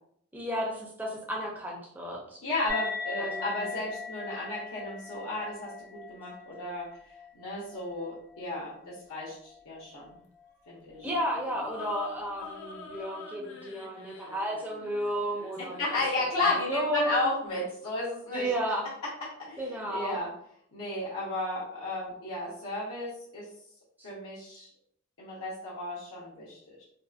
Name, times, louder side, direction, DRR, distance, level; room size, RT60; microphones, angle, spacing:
voice 1, 0.3-2.4 3.2-3.6 11.0-16.0 16.7-17.3 18.3-18.9 19.6-20.2 24.0-24.1, equal, 10° right, -2 dB, 0.4 m, -33 dB
voice 2, 2.4-6.9 7.3-10.1 10.7-11.1 15.6-18.5 19.0-20.3 20.7-23.5 24.0-24.7 25.2-26.8, left 2 dB, 75° left, -8 dB, 0.8 m, -33 dB
sound 1, 2.7-9.6, left 5 dB, 75° right, 0.8 m, -40 dB
sound 2, 10.9-16.1, left 4 dB, 55° left, 0.4 m, -46 dB
2.6 x 2.3 x 2.3 m, 0.68 s
head